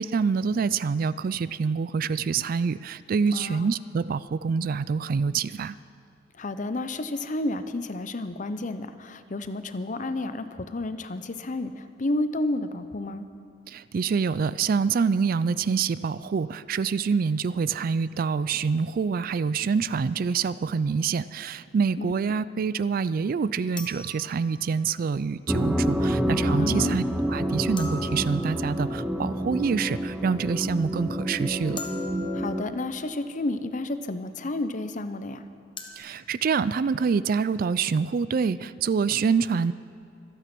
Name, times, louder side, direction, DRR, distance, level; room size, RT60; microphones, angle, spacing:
voice 1, 0.0-5.7 13.7-27.0 27.3-31.8 36.0-39.7, right 5 dB, 50° right, 17 dB, 0.3 m, -26 dB
voice 2, 3.3-3.7 6.4-13.3 22.0-22.1 26.6-27.0 32.3-35.5, left 2 dB, 40° left, 11 dB, 0.7 m, -31 dB
sound 1, 20.3-20.5 23.8-25.0 27.8-29.1 31.8-33.0 35.8-35.9, left 3 dB, 25° left, 1.4 m, -42 dB
sound 2, 25.5-32.6, equal, 5° right, 0.8 m, -28 dB
25.0 x 9.1 x 6.0 m, 2.7 s
head